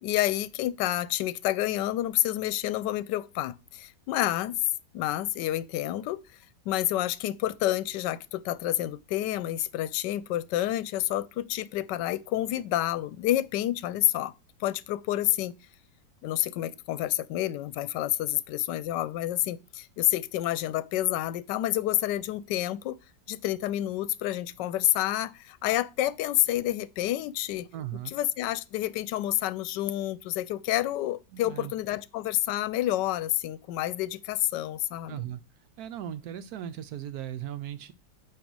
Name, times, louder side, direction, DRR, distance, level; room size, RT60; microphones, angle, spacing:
voice 1, 0.0-4.6 4.9-6.2 6.7-14.3 14.6-15.5 16.2-23.0 23.3-27.7 28.1-35.2, left 14 dB, 85° left, 1.2 m, -29 dB
voice 2, 27.7-28.1 31.3-31.7 35.1-35.4 35.8-37.9, right 11 dB, 70° right, 1.0 m, -37 dB
8.9 x 3.0 x 6.1 m
omnidirectional pair, 1.9 m